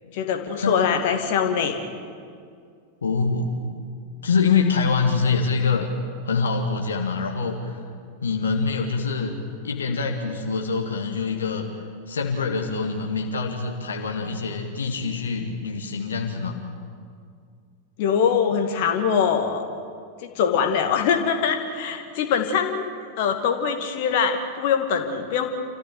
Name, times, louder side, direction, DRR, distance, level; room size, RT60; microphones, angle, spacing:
voice 1, 0.1-1.8 18.0-19.6 20.2-22.9 23.2-25.5, left 7 dB, 50° left, 5 dB, 2.3 m, -23 dB
voice 2, 3.0-3.6 4.2-5.9 6.2-7.8 8.2-9.4 9.6-16.6, left 5 dB, 70° left, 2 dB, 2.0 m, -25 dB
28.0 x 14.5 x 9.3 m, 2.2 s
figure-of-eight pair, 90°, 0 cm